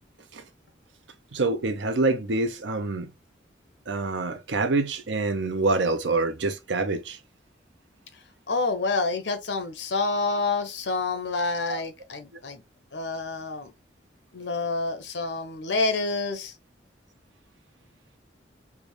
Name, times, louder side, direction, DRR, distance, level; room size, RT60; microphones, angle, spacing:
voice 1, 1.3-3.1 3.9-7.2 11.7-11.8, right 3 dB, 80° right, 0.7 m, -26 dB
voice 2, 8.5-12.6 12.9-13.7 14.3-16.5, left 3 dB, 70° left, 0.9 m, -28 dB
3.4 x 2.5 x 3.1 m
head